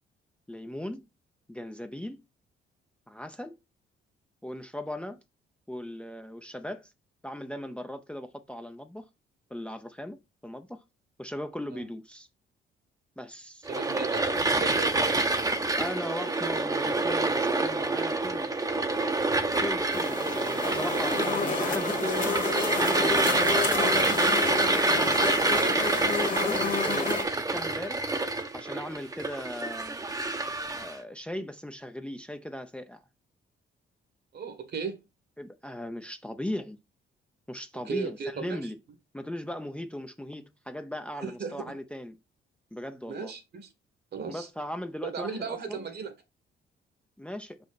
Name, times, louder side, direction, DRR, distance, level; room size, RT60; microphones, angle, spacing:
voice 1, 0.5-1.1 1.5-2.2 3.1-3.5 4.4-5.2 5.7-6.9 7.2-9.1 9.5-10.2 10.4-10.8 11.2-12.3 13.2-13.7 15.7-18.5 19.6-22.4 22.8-24.2 26.2-28.1 28.5-30.0 30.8-33.0 35.4-36.8 37.5-38.8 39.1-42.2 42.7-43.3 44.3-45.8 47.2-47.6, left 1 dB, 5° left, 0.7 m, -38 dB
voice 2, 13.6-15.2 23.4-23.6 25.1-25.8 34.3-35.0 37.9-38.7 41.2-41.7 43.1-43.7 44.1-44.5 45.0-46.1, right 5 dB, 55° right, 1.7 m, -36 dB
sound 1, 13.7-31.0, right 2 dB, 20° right, 0.9 m, -27 dB
sound 2, 19.9-27.2, left 5 dB, 40° left, 1.6 m, -30 dB
5.5 x 5.2 x 4.1 m
cardioid pair, 90°, 20 cm